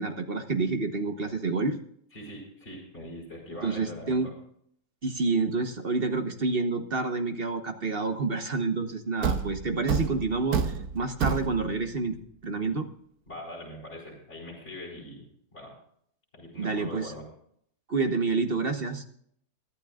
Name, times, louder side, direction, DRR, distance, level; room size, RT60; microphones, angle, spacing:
voice 1, 0.0-1.8 3.6-4.3 5.0-12.2 12.4-12.9 16.6-17.1 17.9-19.0, right 3 dB, 40° right, 6 dB, 1.3 m, -28 dB
voice 2, 2.1-4.3 13.3-15.2 15.5-15.7 16.3-17.3, left 1 dB, 45° left, -5 dB, 5.1 m, -42 dB
Thump thud, 9.2-11.9, right 5 dB, 80° right, 1.5 m, -29 dB
23.0 x 12.0 x 2.4 m, 0.65 s
omnidirectional pair, 1.6 m